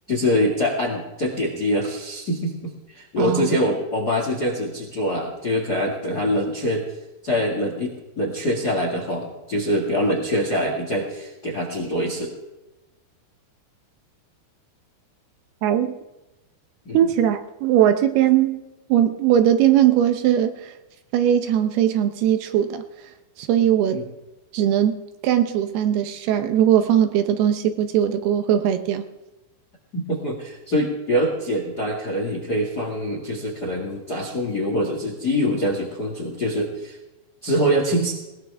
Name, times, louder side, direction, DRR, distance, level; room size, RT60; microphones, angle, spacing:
voice 1, 0.1-6.8 7.2-12.3 16.8-17.1 23.9-24.0 29.9-37.0 37.4-38.1, equal, 80° left, 0 dB, 0.8 m, -24 dB
voice 2, 3.2-3.5 15.6-16.0 16.9-18.6 18.9-20.7 21.1-22.8 23.4-24.0 24.5-29.0, right 10 dB, 75° right, 8 dB, 2.4 m, -20 dB
20.5 x 20.0 x 3.5 m, 1.0 s
omnidirectional pair, 5.5 m